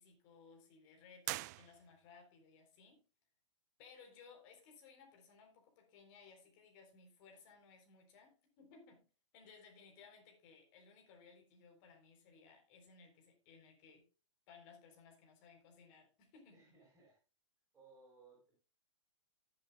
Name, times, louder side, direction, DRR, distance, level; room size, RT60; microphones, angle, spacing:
voice 1, 0.0-3.0 3.8-9.1 9.3-14.1 14.5-16.7, left 5 dB, 40° left, 3.9 m, -61 dB
sound 1, 1.2-2.3, right 19 dB, 35° right, 0.4 m, -44 dB
voice 2, 16.5-17.2 17.7-18.6, right 3 dB, 10° right, 5.5 m, -63 dB
18.0 x 7.7 x 2.4 m
hypercardioid pair, 135°, 15 cm